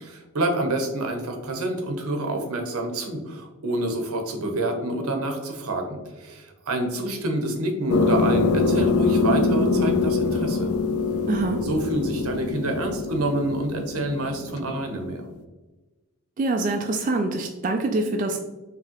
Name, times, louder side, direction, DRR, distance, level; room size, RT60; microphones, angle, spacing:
voice 1, 0.0-10.7 11.6-15.2, right 1 dB, 85° right, 4 dB, 0.8 m, -27 dB
sound 1, 7.9-15.1, left 3 dB, 90° left, 0.4 m, -24 dB
voice 2, 11.3-11.6 16.4-18.4, right 2 dB, 35° right, 3 dB, 0.3 m, -25 dB
4.7 x 3.3 x 2.9 m, 1.1 s
head